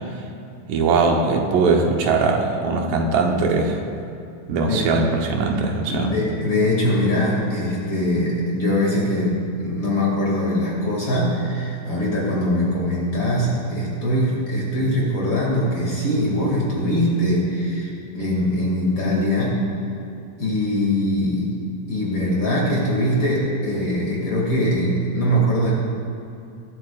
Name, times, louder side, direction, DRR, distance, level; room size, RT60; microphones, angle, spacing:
voice 1, 0.7-3.8 4.5-6.1, right 4 dB, 85° right, 1 dB, 2.8 m, -20 dB
voice 2, 5.9-19.6 20.4-21.5 21.9-25.7, left 1 dB, 40° left, -4 dB, 2.9 m, -22 dB
20.5 x 12.0 x 2.5 m, 2.5 s
omnidirectional pair, 3.7 m